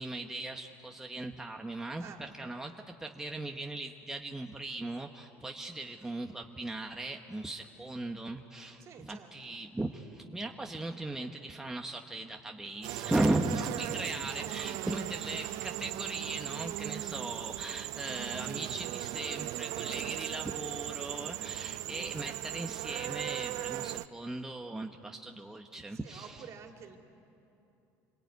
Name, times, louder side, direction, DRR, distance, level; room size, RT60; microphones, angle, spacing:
voice 1, 0.0-2.7 3.0-26.4, right 2 dB, 5° right, 2 dB, 1.2 m, -37 dB
voice 2, 8.8-9.6 14.2-15.1 25.9-27.0, right 6 dB, 50° right, 4 dB, 2.8 m, -50 dB
sound 1, 12.8-24.1, right 16 dB, 70° right, 0.6 m, -38 dB
28.0 x 22.5 x 9.5 m, 2.9 s
cardioid pair, 120°, 7 cm